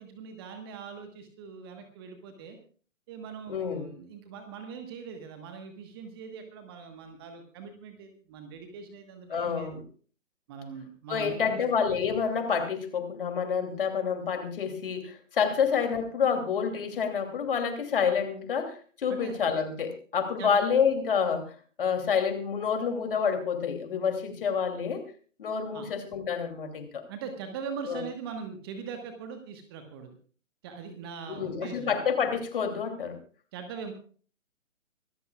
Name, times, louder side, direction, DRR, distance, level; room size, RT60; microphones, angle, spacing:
voice 1, 0.0-2.6 3.1-9.7 10.5-11.6 19.1-19.3 20.4-20.6 25.7-25.9 27.1-30.2 30.6-31.9 33.5-33.9, right 6 dB, 20° right, 6 dB, 1.3 m, -41 dB
voice 2, 3.5-3.9 9.3-9.8 11.1-25.0 25.4-27.0 27.9-28.0 31.3-33.2, left 6 dB, 40° left, 6 dB, 2.9 m, -28 dB
24.5 x 13.5 x 2.4 m, 0.41 s
figure-of-eight pair, 135°, 39 cm